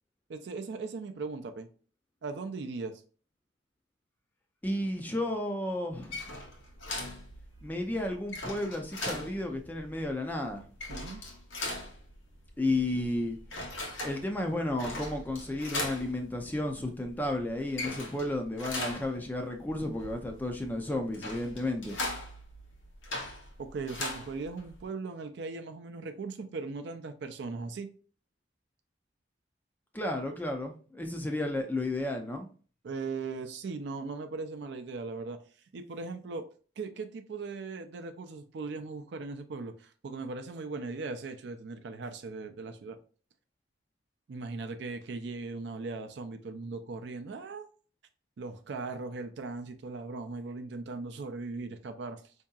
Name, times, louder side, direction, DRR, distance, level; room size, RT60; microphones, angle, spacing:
voice 1, 0.3-1.7 2.2-3.0 10.9-11.2 23.6-27.9 32.8-35.4 35.7-36.4 36.8-43.0 44.3-47.7 48.4-52.3, right 3 dB, 60° right, 6 dB, 0.4 m, -38 dB
voice 2, 4.6-6.2 7.6-10.6 12.6-13.4 14.0-22.0 29.9-32.5, left 1 dB, 10° left, 4 dB, 0.4 m, -32 dB
sound 1, 5.9-24.8, left 2 dB, 90° left, 1.0 m, -40 dB
4.6 x 2.7 x 2.3 m, 0.40 s
head